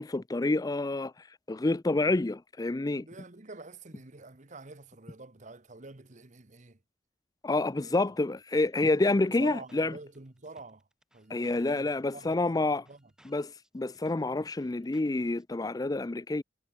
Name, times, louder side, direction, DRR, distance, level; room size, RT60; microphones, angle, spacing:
voice 1, 0.0-3.0 7.4-9.9 11.3-12.9 13.3-16.4, left 2 dB, 20° left, 0.4 m, -28 dB
voice 2, 3.0-6.8 7.7-8.1 9.1-10.8 11.1-13.1, right 3 dB, 45° right, 1.3 m, -48 dB
sound 1, 7.6-8.1 8.4-8.5 8.7-15.4, equal, 5° right, 6.3 m, -65 dB
head